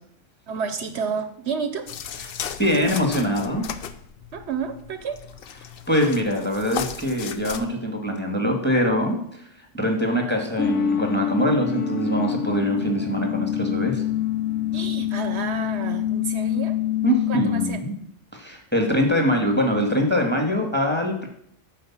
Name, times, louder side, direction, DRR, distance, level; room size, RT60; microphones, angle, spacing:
voice 1, 0.5-1.9 4.3-5.2 14.7-16.8 17.3-17.8, right 6 dB, 65° right, 9 dB, 0.9 m, -30 dB
sound 1, 1.9-7.6, left 8 dB, 60° left, 0.7 m, -36 dB
voice 2, 2.3-3.7 5.9-9.4 9.7-14.0 17.0-17.9 18.3-21.3, equal, 10° left, 2 dB, 1.7 m, -23 dB
sound 2, 10.6-17.7, left 9 dB, 85° left, 1.1 m, -25 dB
9.3 x 4.7 x 7.3 m, 0.68 s
omnidirectional pair, 1.2 m